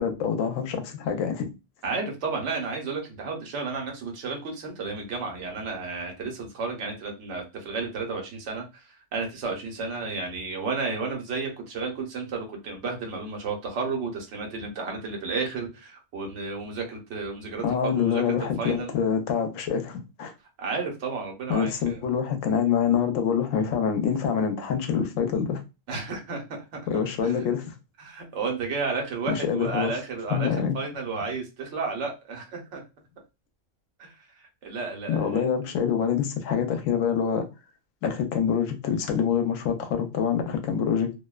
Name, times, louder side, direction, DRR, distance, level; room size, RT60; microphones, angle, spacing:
voice 1, 0.0-1.5 17.6-20.3 21.5-25.6 26.9-27.7 29.3-29.9 30.3-30.7 35.1-37.5 38.0-41.2, left 7 dB, 85° left, 1.0 m, -26 dB
voice 2, 1.8-18.9 20.6-22.0 25.9-26.8 27.2-27.4 28.0-32.8 34.0-35.4, right 4 dB, 65° right, 1.0 m, -32 dB
2.6 x 2.1 x 2.2 m
omnidirectional pair, 1.3 m